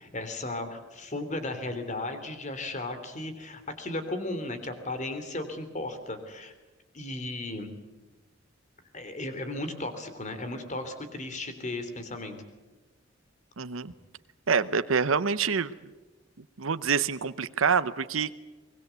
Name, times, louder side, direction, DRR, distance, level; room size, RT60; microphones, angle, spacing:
voice 1, 0.0-6.5 6.9-7.7 8.9-12.4, left 2 dB, 40° left, 8 dB, 3.2 m, -35 dB
voice 2, 13.6-13.9 14.5-15.7 16.6-18.3, right 6 dB, 90° right, 13 dB, 0.8 m, -26 dB
24.0 x 21.0 x 8.2 m, 1.2 s
head